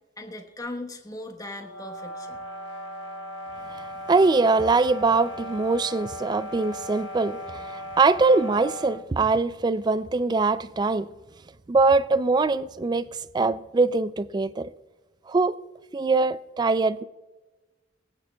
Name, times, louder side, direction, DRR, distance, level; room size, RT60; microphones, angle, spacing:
voice 1, 0.2-2.4, left 2 dB, 20° left, 1.2 m, -38 dB
sound 1, 1.6-9.1, equal, 85° left, 1.3 m, -37 dB
voice 2, 4.1-11.1 11.7-13.1 13.3-14.7 15.3-15.5 15.9-17.0, right 3 dB, 25° right, 0.3 m, -22 dB
22.5 x 9.0 x 2.3 m
head